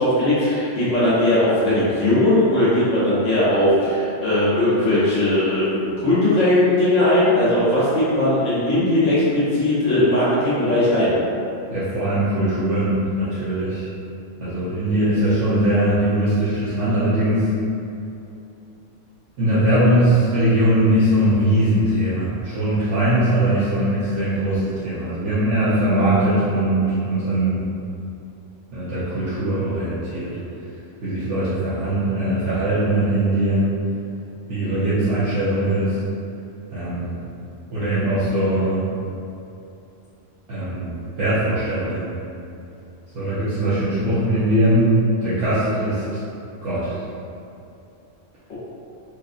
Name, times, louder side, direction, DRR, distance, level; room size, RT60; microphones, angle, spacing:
voice 1, 0.0-11.1 48.5-48.6, left 1 dB, 80° left, -11 dB, 1.4 m, -18 dB
voice 2, 11.7-13.9 14.4-17.5 19.4-27.6 28.7-30.3 31.0-33.7 34.5-36.0 36.7-37.1 37.7-38.9 40.5-42.1 43.1-44.9 45.2-46.0 46.6-47.0, right 1 dB, 75° right, -12 dB, 1.1 m, -20 dB
4.6 x 2.5 x 2.5 m, 2.7 s
omnidirectional pair, 1.3 m